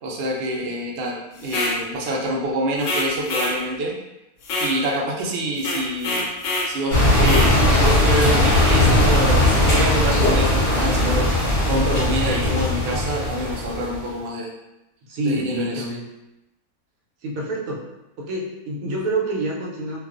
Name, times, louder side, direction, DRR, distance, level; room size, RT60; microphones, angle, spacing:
voice 1, 0.0-4.0 4.6-6.3 6.7-11.3 11.7-14.5 15.2-15.8, right 1 dB, 90° right, -2 dB, 0.5 m, -26 dB
sound 1, 1.4-1.8 2.8-3.6 4.4-4.8 5.6-6.7 7.2-7.5, left 2 dB, 75° left, 1.0 m, -25 dB
sound 2, 6.9-14.0, left 1 dB, 40° left, 0.9 m, -18 dB
voice 2, 15.1-16.0 17.2-17.9 18.2-20.0, right 1 dB, 70° right, -2 dB, 0.9 m, -27 dB
2.4 x 2.3 x 2.4 m, 0.93 s
omnidirectional pair, 1.6 m